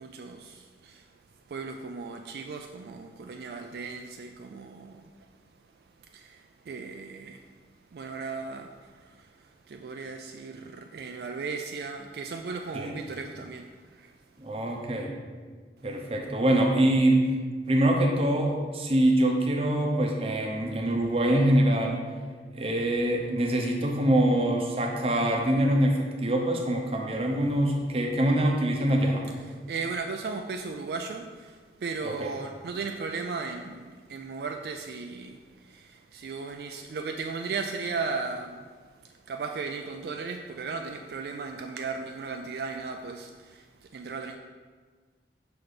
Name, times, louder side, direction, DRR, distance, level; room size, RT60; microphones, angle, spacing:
voice 1, 0.0-14.7 29.4-44.4, right 4 dB, 65° right, 4 dB, 0.3 m, -37 dB
voice 2, 14.4-15.1 15.8-17.3 17.7-22.0 22.5-29.2 32.0-32.3, right 1 dB, 35° right, 1 dB, 0.7 m, -24 dB
5.7 x 4.1 x 4.9 m, 1.5 s
head